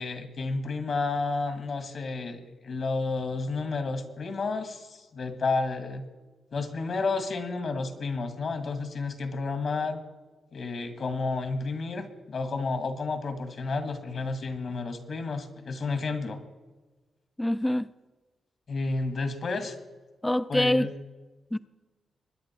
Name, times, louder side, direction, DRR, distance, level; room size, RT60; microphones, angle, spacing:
voice 1, 0.0-6.0 6.5-10.0 10.5-16.4 18.7-19.8 20.5-20.9, left 3 dB, 60° left, 7 dB, 2.0 m, -31 dB
voice 2, 17.4-17.9 20.2-20.9 21.5-21.6, left 1 dB, 10° left, 14 dB, 0.5 m, -25 dB
22.0 x 10.0 x 4.6 m, 1.2 s
cardioid pair, 80°, 0 cm